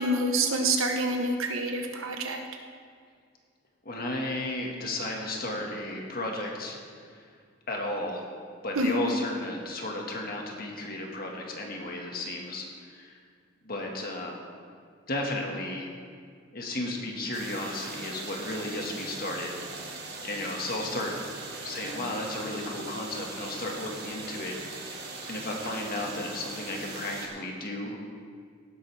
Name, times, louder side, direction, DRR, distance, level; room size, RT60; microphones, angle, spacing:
voice 1, 0.0-2.4 8.7-9.1, right 2 dB, 80° right, 4 dB, 1.2 m, -27 dB
voice 2, 3.9-6.8 7.1-7.2 7.7-8.3 8.6-13.2 13.6-14.4 15.1-15.9 16.5-19.6 20.2-21.2 21.6-28.1, left 1 dB, 45° left, 0 dB, 1.8 m, -34 dB
sound 1, 17.3-27.3, right 3 dB, 50° right, 1.8 m, -40 dB
17.5 x 11.0 x 3.5 m, 2.1 s
head